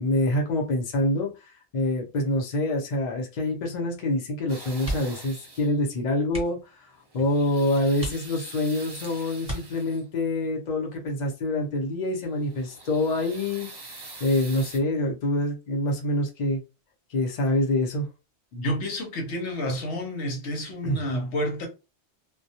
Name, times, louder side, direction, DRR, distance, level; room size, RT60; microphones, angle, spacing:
voice 1, 0.0-6.6 7.1-13.7 14.2-16.6 17.1-18.1 20.8-21.0, left 1 dB, 45° left, 0.7 m, -26 dB
sound 1, 4.5-5.8 6.9-10.2 12.2-14.8, right 3 dB, 35° right, 0.4 m, -44 dB
sound 2, 4.8-5.3 5.6-5.8 6.2-6.7 7.4-7.5 7.9-8.7 9.4-10.2 11.8-12.1 12.4-12.5, equal, 5° right, 1.1 m, -35 dB
voice 2, 18.5-21.7, equal, 80° left, 1.0 m, -30 dB
2.2 x 2.2 x 2.7 m
omnidirectional pair, 1.1 m